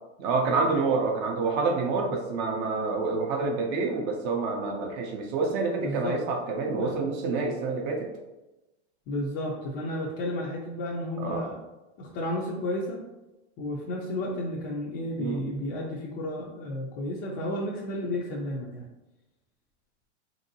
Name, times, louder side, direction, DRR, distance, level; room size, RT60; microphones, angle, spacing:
voice 1, 0.2-8.1 11.2-11.4 15.2-15.4, right 4 dB, 30° right, 1 dB, 0.4 m, -27 dB
voice 2, 5.8-6.2 6.6-7.0 9.1-11.6 12.0-13.1 13.6-18.9, left 1 dB, 30° left, -4 dB, 0.4 m, -32 dB
2.9 x 2.7 x 2.6 m, 1.0 s
supercardioid pair, 135°, 36 cm